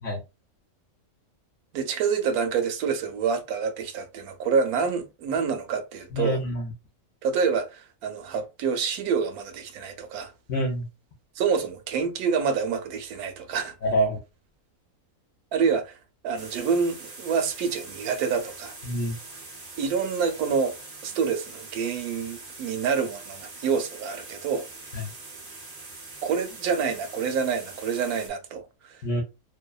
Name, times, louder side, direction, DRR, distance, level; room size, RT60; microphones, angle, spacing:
voice 1, 1.7-6.4 7.2-10.3 11.4-13.7 15.5-16.0 16.2-18.7 19.8-20.8 21.0-24.7 26.2-29.0, right 6 dB, 80° right, 1.1 m, -27 dB
voice 2, 6.1-6.7 10.5-10.8 13.8-14.2 18.8-19.2 24.9-25.0 29.0-29.2, equal, 60° left, 0.9 m, -26 dB
sound 1, 16.4-28.3, right 3 dB, 55° right, 0.4 m, -43 dB
2.7 x 2.2 x 2.2 m
omnidirectional pair, 1.6 m